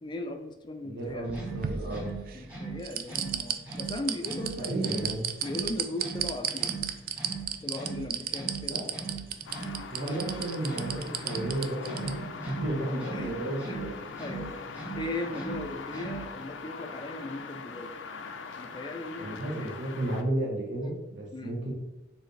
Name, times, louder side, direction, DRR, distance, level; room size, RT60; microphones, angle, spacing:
voice 1, 0.0-1.4 2.3-5.0 5.4-6.9 7.6-8.8 10.0-10.3 12.4-12.6 13.1-13.4 13.6-13.8 14.2-17.9 18.6-19.8 21.3-21.6, left 2 dB, 25° left, 6 dB, 0.4 m, -38 dB
voice 2, 0.8-2.1 4.6-5.3 8.7-8.9 9.9-14.0 19.2-21.7, right 1 dB, 80° right, -1 dB, 1.2 m, -33 dB
sound 1, 1.1-2.4 2.8-12.1 12.5-12.6, right 9 dB, 50° right, 0.3 m, -33 dB
sound 2, 1.2-16.5, right 4 dB, 10° right, 1.6 m, -41 dB
sound 3, 9.4-20.2, left 5 dB, 85° left, 0.4 m, -42 dB
4.7 x 3.4 x 3.2 m, 0.98 s
head